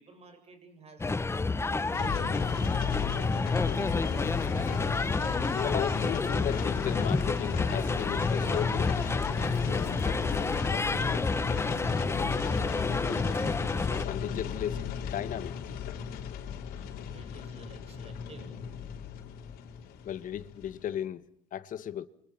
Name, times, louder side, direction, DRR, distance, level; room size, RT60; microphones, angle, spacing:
voice 1, 0.0-2.4 10.6-11.1 11.5-12.8 16.5-18.6, right 3 dB, 40° right, 7.7 m, -54 dB
sound 1, 1.0-14.1, left 3 dB, 15° left, 1.0 m, -30 dB
sound 2, 1.9-20.9, left 7 dB, 75° left, 4.1 m, -34 dB
voice 2, 5.5-9.0 14.0-15.7 20.0-21.2 21.5-22.1, left 10 dB, 60° left, 1.7 m, -35 dB
29.0 x 25.5 x 5.8 m
supercardioid pair, 85°, 16 cm